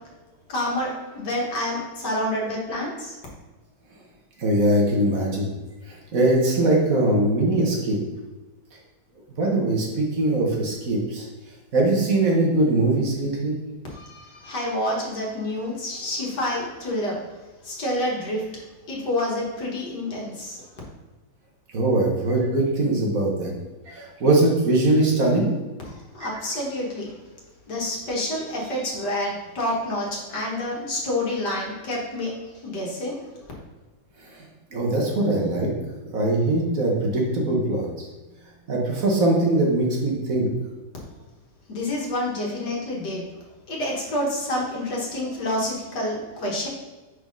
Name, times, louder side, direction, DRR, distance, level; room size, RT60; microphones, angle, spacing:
voice 1, 0.5-3.1 13.9-17.2 17.6-18.4 18.9-20.7 25.9-27.2 27.7-32.3 32.6-33.3 41.7-43.2 43.7-46.7, left 1 dB, 60° left, -3 dB, 2.0 m, -28 dB
voice 2, 4.4-5.5 5.9-8.0 9.4-11.3 11.7-13.6 21.7-23.5 23.9-25.5 34.2-35.7 36.1-38.1 38.7-40.5, right 2 dB, 50° right, -1 dB, 1.6 m, -21 dB
4.8 x 4.1 x 5.3 m, 1.2 s
omnidirectional pair, 2.0 m